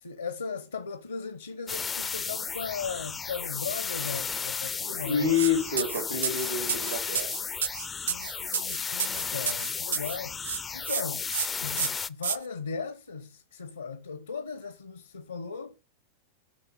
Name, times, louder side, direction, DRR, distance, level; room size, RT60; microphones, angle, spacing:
voice 1, 0.0-5.4 7.9-11.3 11.6-15.7, left 5 dB, 75° left, 0.7 m, -37 dB
sound 1, 1.7-12.1, left 6 dB, 20° left, 0.4 m, -34 dB
voice 2, 4.8-7.4, left 5 dB, 80° right, 2.8 m, -28 dB
sound 2, 5.3-5.5 5.8-10.2 10.4-11.0 11.3-11.5 11.8-12.4, right 8 dB, 65° right, 0.5 m, -31 dB
8.8 x 5.9 x 5.5 m
figure-of-eight pair, 90°, 0 cm